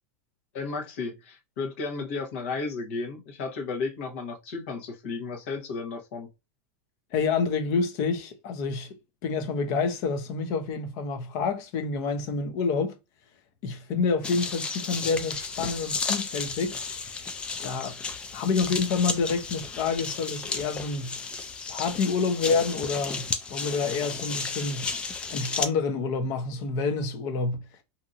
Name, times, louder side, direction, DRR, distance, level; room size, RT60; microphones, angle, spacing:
voice 1, 0.5-6.3, left 4 dB, 65° left, 1.1 m, -33 dB
voice 2, 7.1-12.9 13.6-17.3 17.6-18.0 18.3-21.2 21.7-24.9 25.3-27.6, left 4 dB, 45° left, 0.7 m, -28 dB
sound 1, 14.2-25.7, left 4 dB, 15° left, 0.3 m, -33 dB
2.7 x 2.7 x 2.5 m
supercardioid pair, 160°, 8 cm